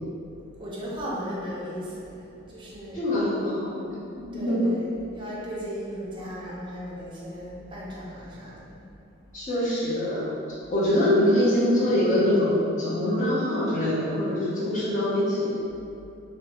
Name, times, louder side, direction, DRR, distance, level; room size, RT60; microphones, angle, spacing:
voice 1, 0.6-3.0 4.3-8.8 10.6-10.8, equal, 25° right, -6 dB, 0.5 m, -36 dB
voice 2, 2.9-4.8 9.3-10.3 10.7-15.5, left 1 dB, 40° left, -8 dB, 0.7 m, -24 dB
2.6 x 2.1 x 2.9 m, 2.5 s
head